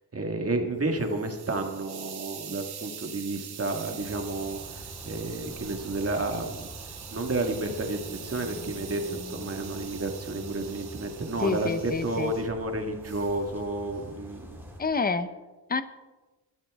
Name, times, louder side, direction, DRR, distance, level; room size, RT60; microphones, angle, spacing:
voice 1, 0.1-6.7 7.1-11.7 12.0-14.6, right 2 dB, 40° right, 4 dB, 1.7 m, -31 dB
Hiss, 0.7-12.5 13.0-13.4, right 8 dB, 85° right, 1.3 m, -44 dB
sound 1, 4.0-14.8, equal, 5° right, 3.9 m, -45 dB
voice 2, 11.4-12.3 14.8-15.3 15.7-15.8, left 4 dB, 25° left, 11 dB, 0.8 m, -27 dB
22.0 x 13.0 x 3.6 m, 1.2 s
wide cardioid pair, 140°, 38 cm